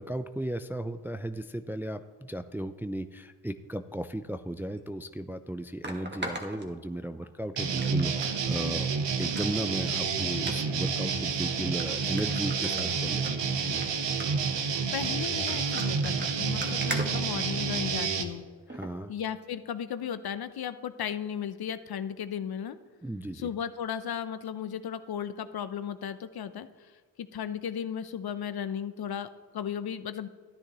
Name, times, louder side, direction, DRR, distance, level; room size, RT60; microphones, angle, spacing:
voice 1, 0.0-8.9 9.2-13.2 13.6-13.8 18.7-19.1 23.0-23.5, right 1 dB, 5° right, 9 dB, 0.4 m, -35 dB
sound 1, 4.8-4.9 5.8-7.3 7.8-8.3 8.7-8.8 9.2-9.7 10.4-10.6 11.3-11.4 11.8-11.9 12.2-13.3 13.7-13.9 14.2-14.5 15.2-17.9 18.7-18.9 19.4-19.5, right 1 dB, 20° right, 1.7 m, -39 dB
sound 2, 7.6-18.2, right 5 dB, 65° right, 1.2 m, -29 dB
voice 2, 14.9-18.4 19.1-22.8 23.3-26.7 27.3-29.3 29.5-30.3, left 8 dB, 50° left, 12 dB, 0.8 m, -35 dB
13.5 x 9.9 x 3.1 m, 1.5 s
supercardioid pair, 45°, 47 cm